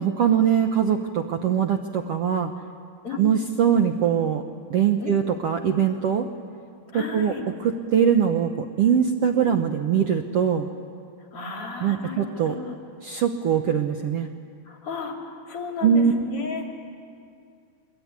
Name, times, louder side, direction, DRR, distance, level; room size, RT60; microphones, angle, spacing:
voice 1, 0.0-2.5 3.2-4.4 4.7-6.3 6.9-7.3 7.6-10.7 11.8-12.5 13.0-14.3 15.8-16.1, right 8 dB, 65° right, 6 dB, 1.6 m, -22 dB
voice 2, 3.0-3.5 5.0-5.2 6.9-7.4 9.3-9.5 11.3-12.8 14.6-16.7, left 4 dB, 45° left, 1 dB, 3.3 m, -34 dB
24.5 x 22.5 x 9.6 m, 2.4 s
omnidirectional pair, 3.8 m